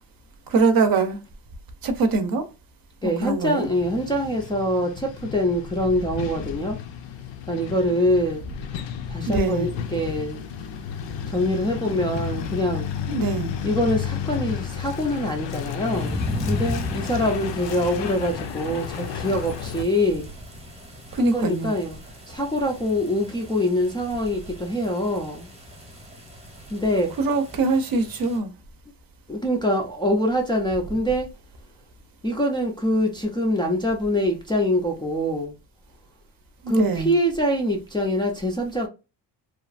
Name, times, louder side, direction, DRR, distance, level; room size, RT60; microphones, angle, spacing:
voice 1, 0.5-1.2 1.8-2.4 3.0-3.7 9.3-9.7 13.1-13.5 21.1-21.8 27.2-28.5 36.6-37.2, right 3 dB, 55° right, 0.6 m, -23 dB
voice 2, 3.0-6.8 7.5-8.4 9.1-10.4 11.3-12.9 13.6-20.3 21.1-22.0 22.3-25.5 26.7-27.1 29.3-31.3 32.2-35.5 36.7-38.9, equal, 10° left, 0.3 m, -24 dB
Truck, 3.6-19.8, left 8 dB, 85° left, 0.5 m, -33 dB
sound 1, 15.9-28.4, left 1 dB, 15° right, 0.8 m, -36 dB
2.8 x 2.4 x 2.4 m
cardioid pair, 145°, 42 cm